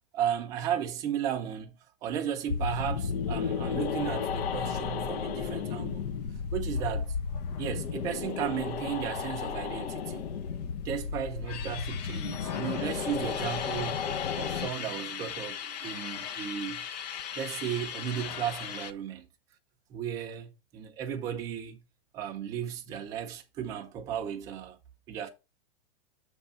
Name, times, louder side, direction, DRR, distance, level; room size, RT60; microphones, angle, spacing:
voice 1, 0.1-6.0 6.5-7.2 7.6-10.3 10.8-14.0 14.3-16.8 17.3-19.2 19.9-21.8 22.1-24.8 25.1-25.3, right 9 dB, 10° right, 0.4 m, -35 dB
sound 1, 2.5-14.7, left 6 dB, 85° left, 0.7 m, -33 dB
sound 2, 4.0-9.1 9.4-9.5 9.7-10.7 11.1-18.9, left 9 dB, 40° left, 0.5 m, -40 dB
7.3 x 3.4 x 5.5 m
supercardioid pair, 170°, 31 cm